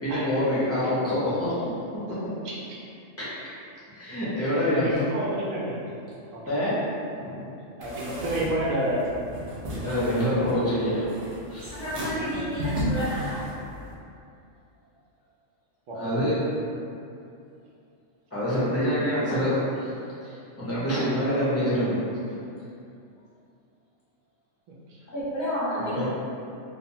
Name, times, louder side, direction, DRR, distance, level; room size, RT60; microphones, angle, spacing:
voice 1, 0.0-1.7 2.1-2.2 3.2-3.3 3.9-4.9 6.5-6.8 7.2-7.4 9.8-11.0 11.5-11.7 16.0-16.4 18.3-19.6 20.2-22.2 25.8-26.0, equal, 20° left, -11 dB, 0.5 m, -26 dB
voice 2, 2.4-2.8 4.7-5.9 6.3-6.4 7.8-9.2 15.9-16.2, right 1 dB, 90° right, -5 dB, 1.0 m, -29 dB
sound 1, 7.8-13.9, equal, 65° right, 0.3 m, -34 dB
voice 3, 11.6-13.4 25.1-26.0, equal, 60° left, -10 dB, 0.9 m, -30 dB
2.8 x 2.0 x 2.7 m, 2.5 s
omnidirectional pair, 1.3 m